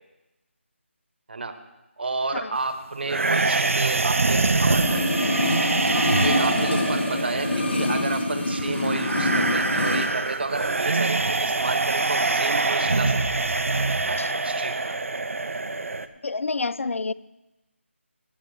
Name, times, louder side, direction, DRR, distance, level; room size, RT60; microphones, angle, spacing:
voice 1, 2.0-5.2 6.2-13.4 14.0-14.9, right 3 dB, 55° right, 1.2 m, -31 dB
sound 1, 3.1-16.1, right 3 dB, 85° right, 0.7 m, -24 dB
sound 2, 4.7-10.1 10.4-10.5, left 2 dB, 55° left, 1.4 m, -25 dB
voice 2, 16.2-17.1, left 3 dB, 80° left, 0.4 m, -28 dB
19.0 x 9.1 x 3.3 m
figure-of-eight pair, 175°, 7 cm